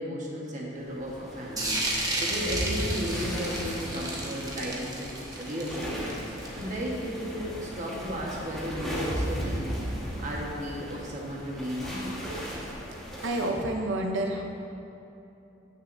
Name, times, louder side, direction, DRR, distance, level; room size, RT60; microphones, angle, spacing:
voice 1, 0.0-9.6 10.2-12.2, equal, 40° right, -3 dB, 1.3 m, -34 dB
sound 1, 0.9-13.5, equal, ahead, 1.4 m, -36 dB
sound 2, 1.6-6.9, right 1 dB, 20° right, 1.0 m, -32 dB
voice 2, 13.2-14.4, right 1 dB, 85° right, 2 dB, 0.7 m, -28 dB
14.5 x 6.5 x 2.7 m, 2.9 s
head